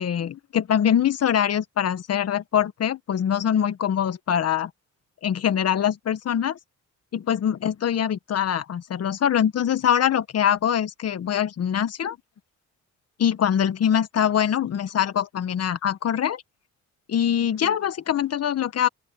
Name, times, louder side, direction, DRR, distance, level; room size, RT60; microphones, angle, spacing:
voice 1, 0.0-4.7 5.2-6.6 7.1-12.2 13.2-16.4 17.1-18.9, left 9 dB, 55° left, 1.4 m, -23 dB
open air
cardioid pair, 90°, 30 cm